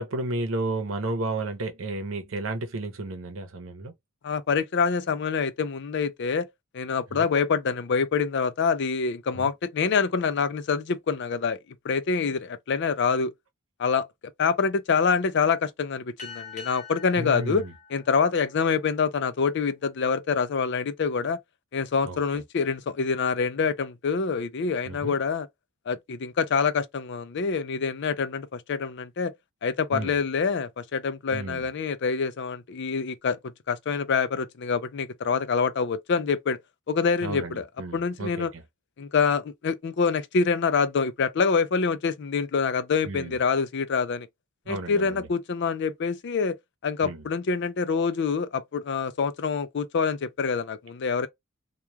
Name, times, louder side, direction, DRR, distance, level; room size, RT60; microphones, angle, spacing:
voice 1, 0.0-3.9 7.1-7.3 9.4-9.5 17.2-17.7 22.0-22.2 24.9-25.2 29.9-30.1 31.3-31.7 37.2-38.6 43.0-43.4 44.7-45.3 47.0-47.2, right 2 dB, 75° right, 0.8 m, -32 dB
voice 2, 4.2-6.5 6.7-11.6 11.8-13.3 13.8-14.1 14.4-17.6 17.9-21.4 21.7-25.5 25.9-29.3 29.6-33.4 33.7-36.6 36.9-37.7 37.9-38.5 39.0-44.3 44.7-46.6 46.8-51.3, left 5 dB, 55° left, 0.4 m, -26 dB
sound 1, 16.2-19.1, left 5 dB, 35° left, 0.9 m, -44 dB
3.0 x 2.3 x 2.2 m
head